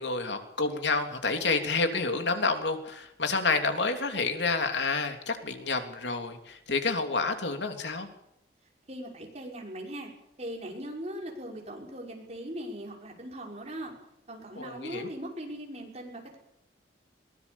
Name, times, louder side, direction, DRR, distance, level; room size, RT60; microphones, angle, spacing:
voice 1, 0.0-8.1 14.6-15.1, left 3 dB, 80° left, 6 dB, 3.2 m, -29 dB
voice 2, 8.9-10.1 10.4-13.9 14.3-16.4, equal, 35° right, 0 dB, 6.0 m, -39 dB
22.5 x 19.0 x 7.2 m, 0.79 s
head